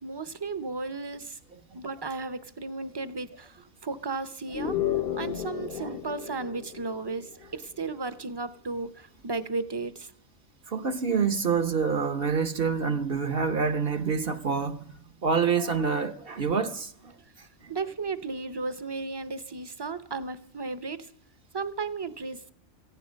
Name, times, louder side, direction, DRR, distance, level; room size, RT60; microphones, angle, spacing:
voice 1, 0.0-1.4 1.7-4.8 5.2-10.1 17.7-21.1 21.5-22.4, right 3 dB, 25° right, 0.7 m, -34 dB
sound 1, 4.5-7.5, left 11 dB, 50° left, 0.9 m, -32 dB
voice 2, 5.6-6.0 10.7-14.9 15.2-17.7, right 5 dB, 50° right, 1.0 m, -27 dB
17.5 x 15.0 x 5.2 m
omnidirectional pair, 1.4 m